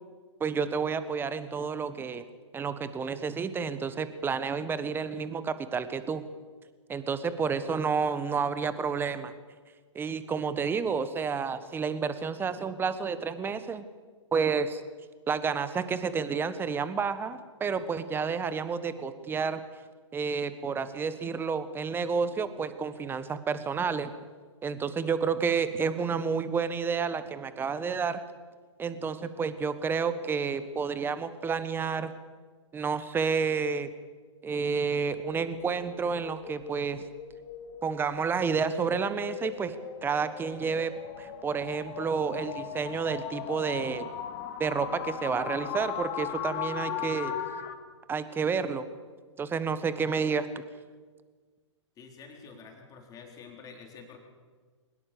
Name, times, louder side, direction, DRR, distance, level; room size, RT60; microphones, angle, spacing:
voice 1, 0.4-2.2 2.5-6.2 6.9-9.3 9.9-13.8 14.3-14.8 15.3-19.6 20.1-24.1 24.6-28.2 28.8-32.1 32.7-33.9 34.4-37.0 37.8-39.7 40.0-44.1 44.6-47.3 48.1-48.9 49.4-50.6, right 5 dB, 15° right, 13 dB, 1.3 m, -30 dB
sound 1, 34.5-47.7, left 9 dB, 35° left, 2.2 m, -39 dB
voice 2, 52.0-54.2, left 5 dB, 20° left, 2 dB, 4.0 m, -48 dB
22.5 x 20.5 x 6.9 m, 1.5 s
hypercardioid pair, 125°, 16 cm